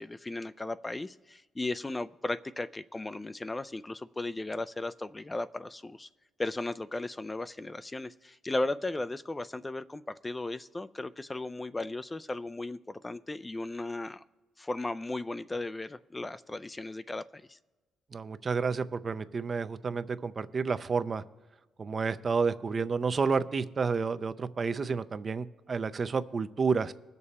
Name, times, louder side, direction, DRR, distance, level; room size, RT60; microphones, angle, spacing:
voice 1, 0.0-6.1 6.4-14.2 14.6-17.6, left 2 dB, 20° left, 13 dB, 0.3 m, -36 dB
voice 2, 18.1-21.2 21.8-26.9, right 5 dB, 40° right, 12 dB, 0.5 m, -30 dB
20.5 x 6.8 x 4.2 m, 1.2 s
cardioid pair, 90°, 0 cm